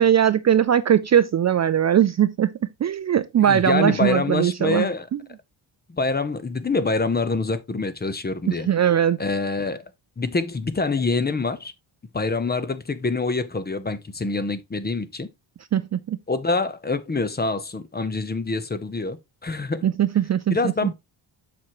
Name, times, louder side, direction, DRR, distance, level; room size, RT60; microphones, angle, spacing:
voice 1, 0.0-4.9 8.5-9.2 15.7-16.2 19.8-20.6, right 9 dB, 40° right, 0.4 m, -20 dB
voice 2, 3.4-5.1 5.9-8.7 9.2-9.8 10.2-11.7 12.1-15.3 16.3-19.9 20.5-20.9, left 3 dB, 20° left, 0.8 m, -25 dB
7.3 x 5.9 x 3.0 m
cardioid pair, 115°, 45 cm